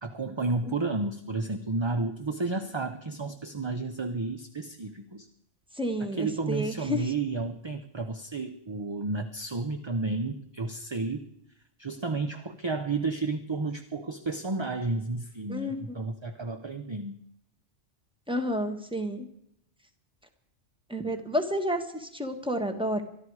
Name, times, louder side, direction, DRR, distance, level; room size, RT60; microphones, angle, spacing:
voice 1, 0.0-5.3 6.2-11.3 11.8-17.2, right 3 dB, 25° right, 7 dB, 0.7 m, -32 dB
voice 2, 5.7-7.1 15.5-16.0 18.3-19.3 20.9-23.0, equal, 5° right, 6 dB, 1.5 m, -30 dB
24.0 x 12.5 x 4.8 m, 0.74 s
omnidirectional pair, 1.2 m